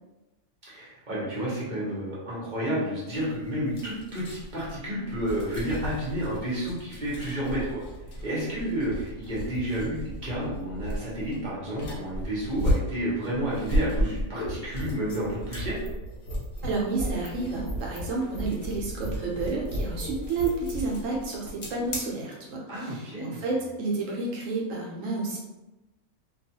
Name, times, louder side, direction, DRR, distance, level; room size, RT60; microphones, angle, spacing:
voice 1, 0.6-7.8 8.2-15.8 22.7-23.4, right 1 dB, 40° right, -7 dB, 0.9 m, -31 dB
sound 1, 3.2-22.0, equal, 85° left, 1.2 m, -35 dB
sound 2, 14.0-20.9, equal, 60° left, 0.9 m, -36 dB
voice 2, 16.6-25.4, right 3 dB, 80° right, -2 dB, 1.1 m, -30 dB
2.6 x 2.3 x 2.8 m, 1.0 s
omnidirectional pair, 1.4 m